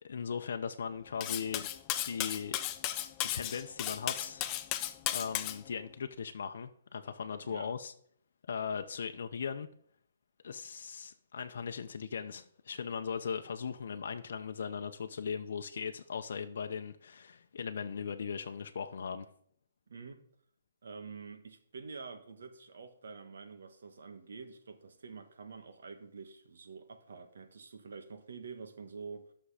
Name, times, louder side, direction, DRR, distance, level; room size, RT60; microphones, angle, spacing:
voice 1, 0.0-1.7 2.0-2.6 3.2-4.5 5.1-7.9 8.5-9.7 10.4-19.3, left 6 dB, 60° left, 0.7 m, -38 dB
Cutlery silverware, 1.2-5.6, left 13 dB, 20° left, 0.4 m, -35 dB
voice 2, 19.9-20.2 20.8-29.2, right 4 dB, 70° right, 1.5 m, -47 dB
13.0 x 6.3 x 4.9 m
hypercardioid pair, 170°, 0 cm